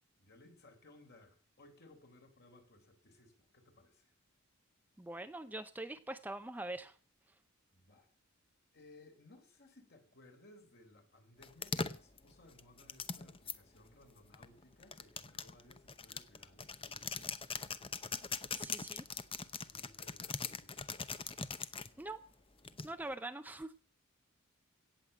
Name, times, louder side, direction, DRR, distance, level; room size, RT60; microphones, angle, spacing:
voice 1, 0.2-4.1 7.7-8.1 8.7-17.3 19.5-20.9, left 2 dB, 50° left, 4 dB, 4.0 m, -61 dB
voice 2, 5.0-7.0 18.5-19.1 22.0-22.3 22.8-23.8, right 2 dB, 10° right, 9 dB, 0.6 m, -43 dB
sound 1, 11.4-13.6 14.3-21.9 22.7-23.1, left 5 dB, 25° left, 0.8 m, -41 dB
17.5 x 7.5 x 7.9 m, 0.41 s
head